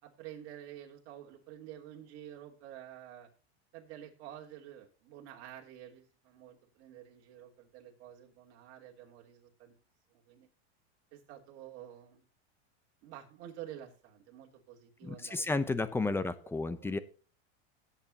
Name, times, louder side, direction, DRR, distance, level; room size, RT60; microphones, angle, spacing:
voice 1, 0.0-3.3 3.7-9.7 10.1-10.5 11.1-12.2 13.0-15.7 16.1-16.3 16.7-16.9, right 11 dB, 50° right, 0 dB, 3.4 m, -50 dB
voice 2, 15.0-17.0, left 3 dB, 5° left, 13 dB, 0.8 m, -32 dB
17.5 x 8.5 x 2.9 m, 0.37 s
supercardioid pair, 135°, 33 cm